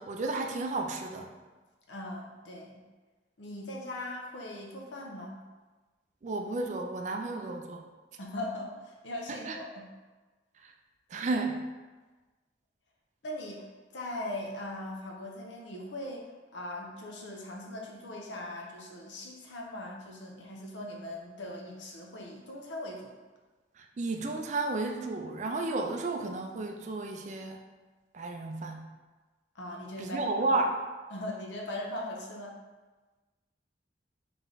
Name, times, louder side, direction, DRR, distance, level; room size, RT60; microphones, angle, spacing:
voice 1, 0.0-1.3 6.2-7.8 9.3-9.6 10.6-10.7 11.1-11.6 23.8-27.6 28.1-28.9 30.0-30.8, right 2 dB, 40° right, 4 dB, 0.3 m, -32 dB
voice 2, 1.9-2.8 3.4-5.4 8.2-9.9 13.2-13.7 13.9-23.2 29.5-30.2 31.1-32.6, left 1 dB, 80° left, -1 dB, 0.7 m, -40 dB
3.3 x 3.2 x 3.8 m, 1.3 s
head